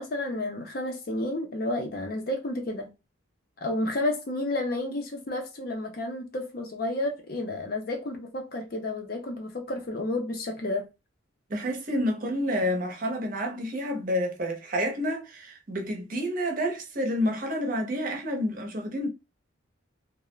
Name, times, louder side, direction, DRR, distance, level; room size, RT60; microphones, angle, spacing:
voice 1, 0.0-2.9 3.6-10.9, left 1 dB, 45° left, 0.5 m, -31 dB
voice 2, 11.5-19.1, equal, 40° right, 0.6 m, -29 dB
2.3 x 2.0 x 3.0 m
head